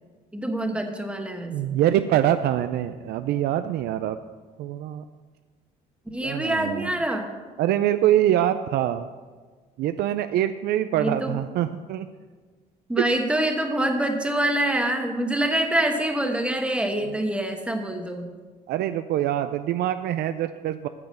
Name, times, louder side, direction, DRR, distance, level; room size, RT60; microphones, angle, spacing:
voice 1, 0.3-1.7 6.1-7.3 11.0-11.3 12.9-18.3, right 1 dB, 5° right, 4 dB, 1.2 m, -25 dB
voice 2, 1.5-4.2 4.6-5.0 6.2-6.9 7.6-9.1 9.8-12.1 13.0-13.1 18.7-20.9, right 12 dB, 70° right, 10 dB, 0.4 m, -24 dB
9.5 x 7.0 x 6.4 m, 1.4 s
cardioid pair, 110°, 17 cm